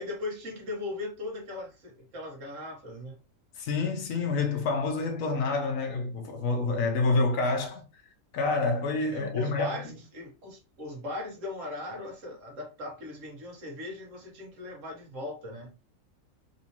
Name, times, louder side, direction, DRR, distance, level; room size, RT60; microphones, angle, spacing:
voice 1, 0.0-3.2 9.0-15.7, left 2 dB, 70° right, 1.4 m, -38 dB
voice 2, 3.6-7.8 8.3-9.8, left 3 dB, 75° left, 1.2 m, -28 dB
4.1 x 2.7 x 2.8 m
omnidirectional pair, 1.4 m